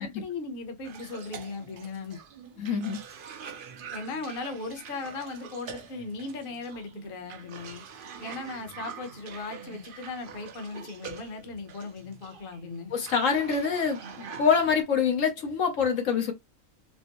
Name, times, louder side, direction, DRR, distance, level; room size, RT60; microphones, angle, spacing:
voice 1, 0.0-2.2 3.9-7.8 8.2-12.9, left 3 dB, 50° left, 1.0 m, -38 dB
Cough, 0.8-14.8, right 6 dB, 55° right, 0.7 m, -45 dB
voice 2, 2.6-3.0 12.9-14.0 14.4-16.3, left 6 dB, 80° left, 1.2 m, -25 dB
4.3 x 2.0 x 2.9 m
omnidirectional pair, 1.3 m